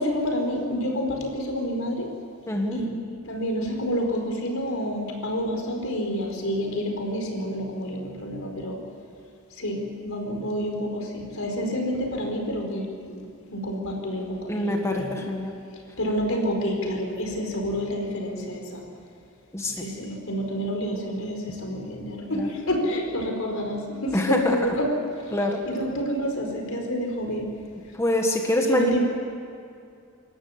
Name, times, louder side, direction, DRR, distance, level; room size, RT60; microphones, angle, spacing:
voice 1, 0.0-2.1 2.7-2.9 3.2-8.8 9.6-13.2 13.5-15.3 16.0-18.8 19.7-24.9 25.6-27.5 28.6-29.0, equal, 80° left, 1 dB, 4.7 m, -28 dB
voice 2, 2.5-2.8 14.5-15.5 19.5-19.7 22.3-22.5 24.1-24.6 25.3-25.6 28.0-29.0, left 1 dB, 15° left, 1 dB, 1.7 m, -24 dB
26.5 x 14.0 x 9.7 m, 2.5 s
head